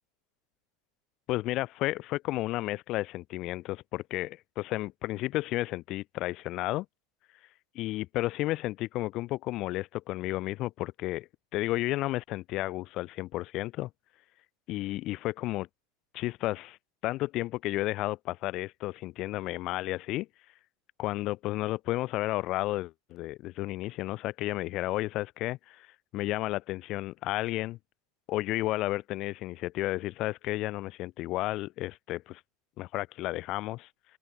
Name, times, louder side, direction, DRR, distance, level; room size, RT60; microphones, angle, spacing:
voice 1, 1.3-6.9 7.7-13.9 14.7-15.7 16.1-16.8 17.0-20.3 21.0-25.9 26.1-27.8 28.3-32.4 32.8-33.9, left 17 dB, 55° left, 0.8 m, -32 dB
open air
hypercardioid pair, 95°, 0 cm